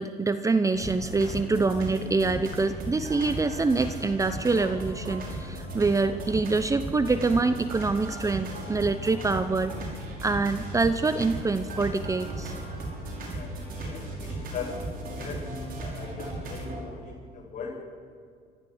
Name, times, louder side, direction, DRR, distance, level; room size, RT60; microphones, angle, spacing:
voice 1, 0.0-9.7 10.2-12.5, right 3 dB, 20° right, 11 dB, 0.8 m, -25 dB
sound 1, 0.7-16.5, left 1 dB, 20° left, 6.9 m, -48 dB
sound 2, 0.8-16.8, right 2 dB, 60° right, 5.8 m, -36 dB
voice 2, 13.3-14.9 15.1-15.5 15.8-17.7, left 5 dB, 50° left, -2 dB, 7.8 m, -40 dB
24.5 x 14.5 x 7.9 m, 2.2 s
cardioid pair, 110°, 17 cm